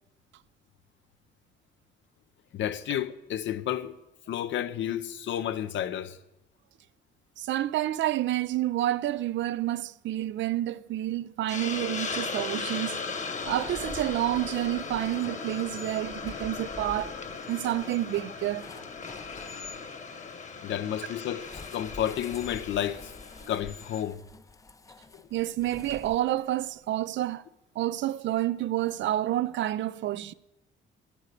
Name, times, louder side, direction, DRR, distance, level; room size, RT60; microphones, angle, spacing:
voice 1, 2.5-3.9 4.3-6.2 20.6-21.5 21.7-23.1 23.5-24.2 25.1-25.2, left 10 dB, 70° left, 0.7 m, -31 dB
voice 2, 7.4-13.1 13.4-17.2 17.5-18.7 25.3-27.4 27.8-30.3, right 14 dB, 70° right, 0.4 m, -29 dB
Hiss, 11.5-24.0, left 4 dB, 40° left, 1.0 m, -38 dB
sound 1, 13.4-19.8 21.4-26.6, left 4 dB, 15° left, 0.4 m, -48 dB
8.6 x 8.2 x 6.7 m
cardioid pair, 90°, 20 cm